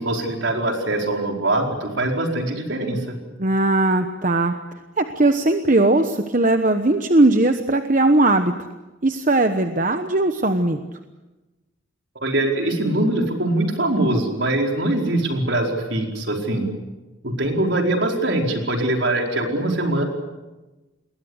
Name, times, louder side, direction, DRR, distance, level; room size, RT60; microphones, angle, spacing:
voice 1, 0.0-3.2 12.2-16.7 17.2-20.0, right 1 dB, 65° right, 2 dB, 4.9 m, -22 dB
voice 2, 3.4-4.5 5.0-8.5 9.0-10.8, right 2 dB, 40° right, 7 dB, 1.1 m, -18 dB
28.5 x 21.5 x 8.2 m, 1.1 s
head